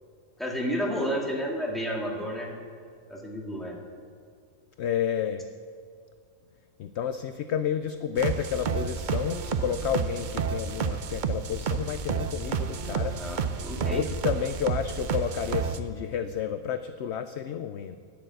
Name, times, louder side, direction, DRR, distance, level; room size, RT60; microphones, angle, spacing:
voice 1, 0.4-2.5 3.1-3.8 13.2-14.0, equal, ahead, -2 dB, 2.1 m, -31 dB
voice 2, 4.8-5.5 6.8-13.2 13.9-18.0, left 8 dB, 65° left, 10 dB, 0.7 m, -30 dB
sound 1, 8.2-15.8, right 6 dB, 55° right, 0.5 m, -30 dB
12.0 x 9.2 x 7.7 m, 2.3 s
omnidirectional pair, 1.5 m